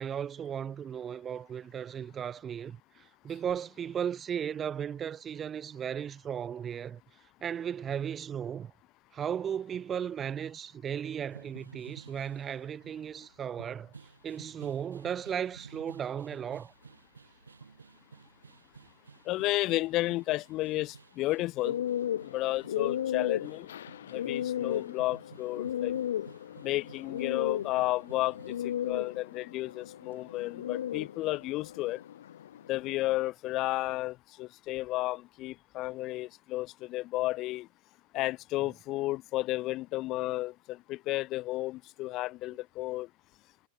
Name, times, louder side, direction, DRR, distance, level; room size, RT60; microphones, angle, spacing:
voice 1, 0.0-7.0 7.4-8.7 9.1-13.9 14.2-16.7, right 8 dB, 25° right, 0.5 m, -36 dB
sound 1, 11.2-28.8, right 5 dB, 75° right, 7.1 m, -54 dB
voice 2, 19.3-21.8 22.2-23.7 24.1-26.0 26.6-32.0 32.7-37.7 38.1-43.1, left 18 dB, 40° left, 0.3 m, -32 dB
sound 2, 21.6-33.2, left 10 dB, 60° left, 0.9 m, -35 dB
figure-of-eight pair, 90°, 0 cm